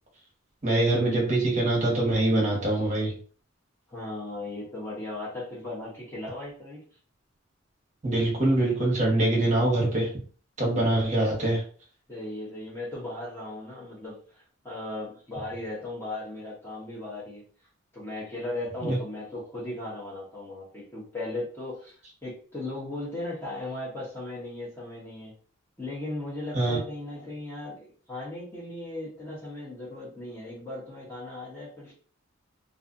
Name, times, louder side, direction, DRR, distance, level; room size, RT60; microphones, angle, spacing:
voice 1, 0.6-3.1 8.0-10.1 10.6-11.6 18.8-19.0 26.5-26.8, right 2 dB, 35° right, -3 dB, 1.0 m, -24 dB
voice 2, 3.9-6.8 12.1-17.4 17.9-25.3 25.8-31.9, left 2 dB, 10° left, -6 dB, 0.8 m, -37 dB
2.4 x 2.4 x 2.5 m, 0.42 s
head